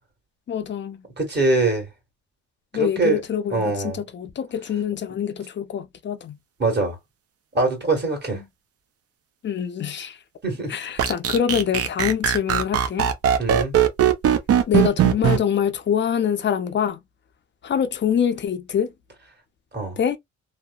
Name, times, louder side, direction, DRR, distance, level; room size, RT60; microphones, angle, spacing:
voice 1, 0.5-1.0 2.7-6.4 8.3-8.4 9.4-10.2 10.7-13.1 14.7-17.0 17.6-18.9 20.0-20.2, left 8 dB, 40° left, 0.5 m, -25 dB
voice 2, 1.2-1.9 2.7-3.2 3.5-4.0 6.6-7.0 7.5-8.4 10.4-10.7 13.4-13.8 19.7-20.0, right 3 dB, 35° right, 1.5 m, -23 dB
sound 1, 11.0-15.4, right 9 dB, 50° right, 0.5 m, -19 dB
2.9 x 2.1 x 2.3 m
cardioid pair, 90°, 30 cm